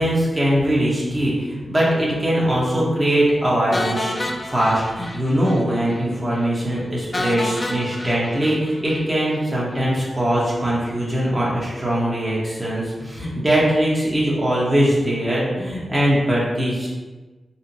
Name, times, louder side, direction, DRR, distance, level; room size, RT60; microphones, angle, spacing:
voice 1, 0.0-16.9, right 1 dB, 20° right, -6 dB, 0.9 m, -21 dB
sound 1, 3.7-5.6 5.9-6.0 6.4-6.5 7.1-9.4, left 1 dB, 25° left, 0.3 m, -29 dB
4.2 x 2.1 x 4.0 m, 1.3 s
wide cardioid pair, 160°, 0 cm